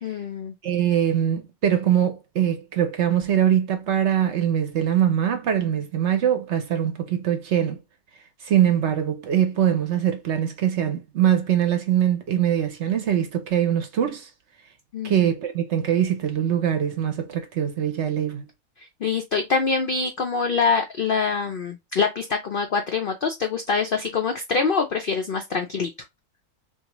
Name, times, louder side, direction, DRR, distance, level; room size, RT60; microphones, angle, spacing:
voice 1, 0.0-0.5 14.9-15.3 18.8-25.9, left 5 dB, 85° left, 0.4 m, -25 dB
voice 2, 0.6-7.8 8.4-14.3 15.0-18.4, right 10 dB, 60° right, 0.8 m, -22 dB
3.6 x 2.7 x 2.9 m
omnidirectional pair, 1.6 m